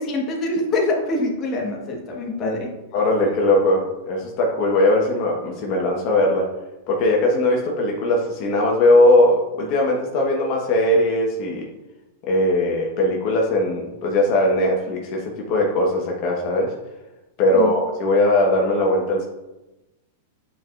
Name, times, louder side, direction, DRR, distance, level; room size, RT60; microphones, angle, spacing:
voice 1, 0.0-2.7 17.5-17.7, left 2 dB, 30° left, 0 dB, 1.3 m, -24 dB
voice 2, 2.9-6.5 6.9-11.7 12.3-16.7 17.4-19.2, left 1 dB, 50° left, -1 dB, 1.1 m, -19 dB
8.5 x 4.6 x 2.5 m, 1.0 s
hypercardioid pair, 125°, 0 cm